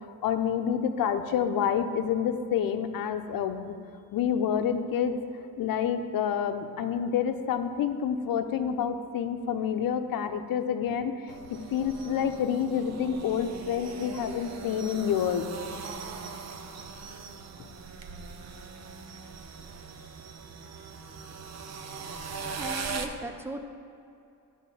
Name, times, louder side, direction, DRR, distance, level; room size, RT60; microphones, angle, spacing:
voice 1, 0.2-3.8 4.1-5.2 5.6-11.2 11.7-15.5, left 8 dB, 75° left, 8 dB, 0.7 m, -28 dB
sound 1, 11.3-23.1, right 5 dB, 50° right, 0.7 m, -40 dB
voice 2, 22.5-23.6, right 1 dB, 5° right, 4 dB, 0.7 m, -37 dB
10.5 x 3.8 x 7.0 m, 2.6 s
cardioid pair, 115°, 35 cm